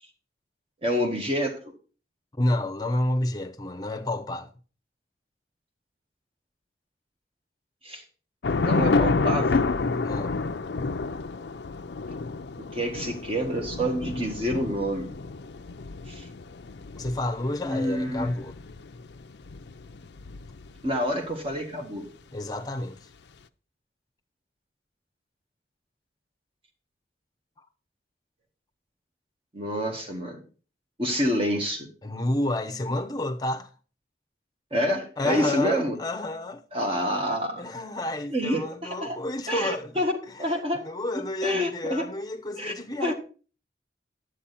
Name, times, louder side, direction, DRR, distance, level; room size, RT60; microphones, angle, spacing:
voice 1, 0.8-1.6 7.8-8.0 8.6-9.7 12.7-15.1 16.1-16.3 17.6-18.3 20.8-22.1 29.5-30.4 31.0-31.9 34.7-36.0 36.7-37.7 38.3-39.2 39.5-40.1 40.4-40.8 41.4-42.1 42.5-42.7 43.0-43.1, equal, 30° right, 1.8 m, -27 dB
voice 2, 2.4-4.5 10.0-10.3 17.0-18.6 22.3-23.1 32.0-33.7 35.2-36.6 37.6-40.5 40.8-43.1, left 1 dB, 20° left, 0.8 m, -30 dB
Thunder / Rain, 8.4-20.9, left 3 dB, 70° left, 0.5 m, -29 dB
10.0 x 8.0 x 4.2 m
head